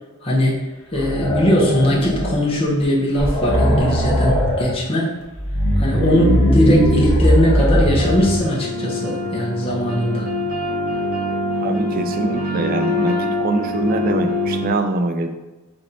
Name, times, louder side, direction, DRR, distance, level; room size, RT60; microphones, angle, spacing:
voice 1, 0.2-0.5 0.9-5.1 5.8-10.3, equal, 25° left, -5 dB, 0.9 m, -20 dB
sound 1, 1.0-2.5 2.8-2.9 3.2-4.7 5.3-8.5, equal, 80° left, 1.1 m, -18 dB
sound 2, 8.0-14.7, left 1 dB, 85° right, 1.1 m, -24 dB
voice 2, 11.6-15.3, right 2 dB, 40° right, 7 dB, 0.4 m, -23 dB
4.3 x 3.0 x 3.9 m, 1.1 s
head